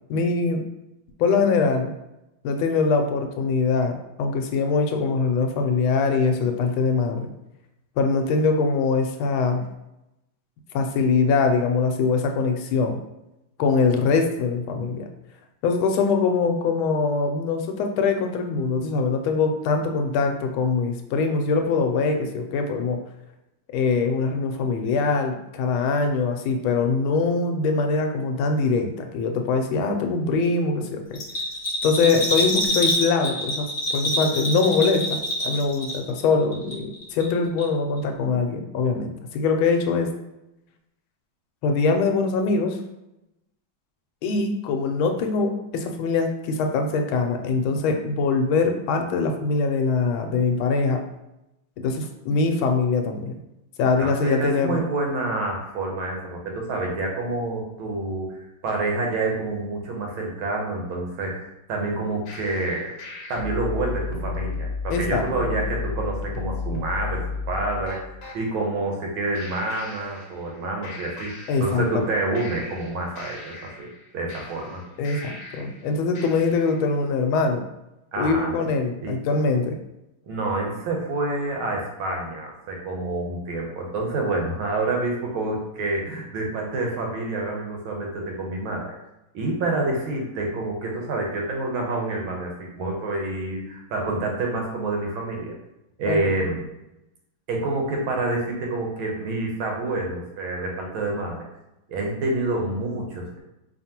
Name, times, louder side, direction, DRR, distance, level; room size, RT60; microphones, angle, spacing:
voice 1, 0.1-0.6 1.2-1.9 2.4-7.3 8.0-9.7 10.7-13.0 13.6-15.1 15.6-23.0 23.7-31.2 31.8-40.1 41.6-42.8 44.2-51.0 51.8-53.3 53.8-54.8 64.9-65.3 65.6-65.7 71.5-71.9 75.0-77.6 78.2-79.8 96.1-96.3, left 4 dB, 90° left, 4 dB, 1.4 m, -23 dB
Bell, 31.1-36.2 36.5-37.3 37.6-37.7, left 1 dB, 40° left, 1.1 m, -26 dB
voice 2, 54.0-58.4 58.6-62.9 63.3-73.9 74.1-74.8 78.1-78.5 79.0-79.2 80.3-88.9 89.3-95.6 96.0-96.6 97.5-101.4 101.9-103.4, right 2 dB, 85° right, 0 dB, 1.7 m, -28 dB
sound 1, 62.3-68.4 69.3-70.6 70.8-72.0 72.3-75.8 76.1-76.8, left 4 dB, 65° left, 1.2 m, -34 dB
4.7 x 2.9 x 2.8 m, 0.91 s
omnidirectional pair, 2.2 m